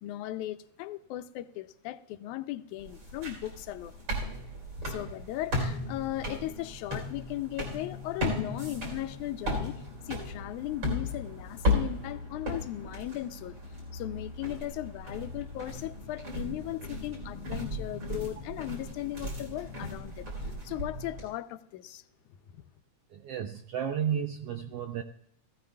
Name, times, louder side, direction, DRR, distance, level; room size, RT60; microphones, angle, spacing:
voice 1, 0.0-3.9 4.8-13.6 13.9-22.0 22.5-22.6, left 14 dB, 80° left, 2.0 m, -37 dB
sound 1, 2.8-21.2, left 2 dB, 45° right, 4.8 m, -36 dB
voice 2, 23.1-25.0, right 8 dB, 75° right, 1.4 m, -32 dB
18.0 x 16.0 x 2.3 m
omnidirectional pair, 3.5 m